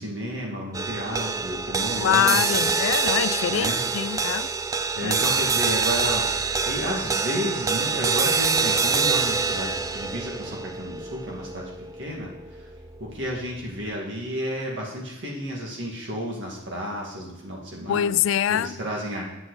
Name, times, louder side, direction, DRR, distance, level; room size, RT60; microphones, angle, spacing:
voice 1, 0.0-2.7 3.5-3.8 5.0-6.3 6.6-11.7 12.0-12.7 13.0-18.1 18.5-19.3, equal, 60° right, 2.2 m, -32 dB
sound 1, 0.7-13.2, right 4 dB, 15° right, 0.3 m, -26 dB
voice 2, 2.0-4.5 5.0-5.1 17.9-18.8, left 9 dB, 75° left, 0.3 m, -24 dB
11.0 x 7.8 x 4.0 m
head